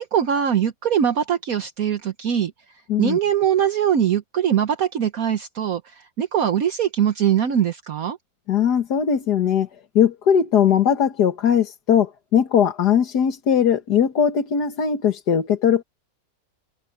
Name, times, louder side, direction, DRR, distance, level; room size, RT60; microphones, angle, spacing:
voice 1, 0.0-8.2, right 9 dB, 65° right, 1.4 m, -22 dB
voice 2, 8.5-9.7 10.0-15.8, left 8 dB, 90° left, 2.1 m, -19 dB
omnidirectional pair, 1.7 m